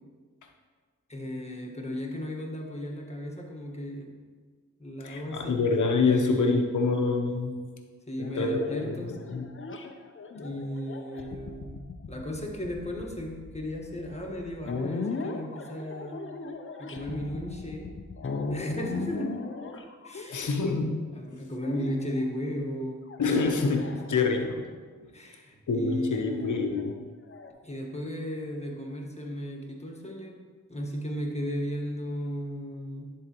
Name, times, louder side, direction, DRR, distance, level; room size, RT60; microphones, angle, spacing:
voice 1, 1.1-4.1 4.8-5.7 5.9-6.8 8.1-9.2 10.4-11.8 12.1-16.2 16.8-18.0 18.5-19.3 20.0-20.5 21.1-23.4 25.1-26.8 27.6-30.4 30.7-33.1, equal, 20° left, 0 dB, 1.5 m, -35 dB
voice 2, 5.0-7.6 8.4-9.5 20.3-21.0 23.2-24.7 25.7-26.9, left 4 dB, 70° left, 4 dB, 0.9 m, -26 dB
sound 1, 8.2-20.8 21.6-22.2 23.1-24.6 26.1-27.5, left 4 dB, 40° left, 0.7 m, -37 dB
10.5 x 3.7 x 3.0 m, 1.5 s
cardioid pair, 40°, 32 cm